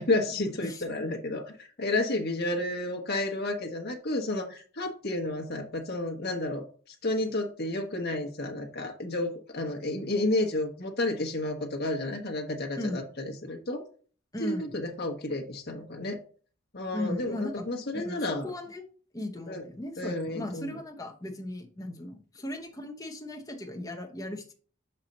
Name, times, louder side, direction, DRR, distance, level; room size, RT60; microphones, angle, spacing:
voice 1, 0.0-13.8 14.4-16.2 16.7-18.5 19.5-19.6 20.0-20.8, left 2 dB, 50° left, 3 dB, 1.1 m, -31 dB
voice 2, 14.3-14.7 16.9-17.7 17.9-18.8 19.1-24.5, left 1 dB, 15° left, 2 dB, 0.8 m, -37 dB
5.6 x 4.4 x 5.2 m, 0.43 s
head